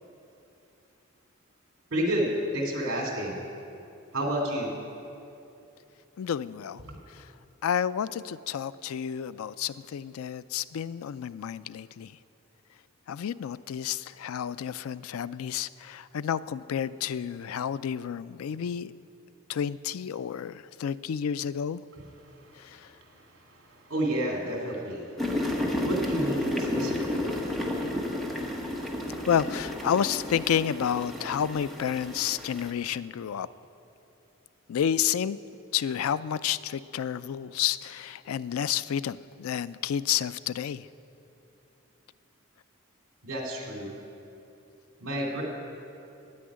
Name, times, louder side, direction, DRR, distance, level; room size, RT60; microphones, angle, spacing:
voice 1, 1.9-3.5 4.1-4.8 6.8-7.0 22.0-29.3 43.2-44.0 45.0-45.4, right 1 dB, 60° right, 0 dB, 2.5 m, -32 dB
voice 2, 6.2-6.8 7.6-12.1 13.1-18.9 19.5-21.8 22.6-22.9 29.3-33.5 34.7-35.4 35.7-40.9, left 8 dB, 80° left, 17 dB, 0.3 m, -30 dB
sound 1, 25.2-32.7, left 1 dB, ahead, 1.1 m, -32 dB
9.9 x 8.7 x 9.5 m, 2.8 s
head